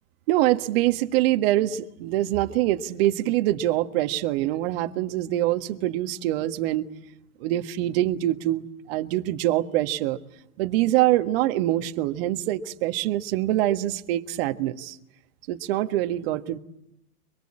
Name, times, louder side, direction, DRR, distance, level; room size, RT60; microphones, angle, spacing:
voice 1, 0.3-6.9 7.4-10.2 10.6-15.0 15.5-16.6, right 14 dB, 40° right, 1.6 m, -24 dB
24.0 x 23.5 x 8.8 m
hypercardioid pair, 130°, 46 cm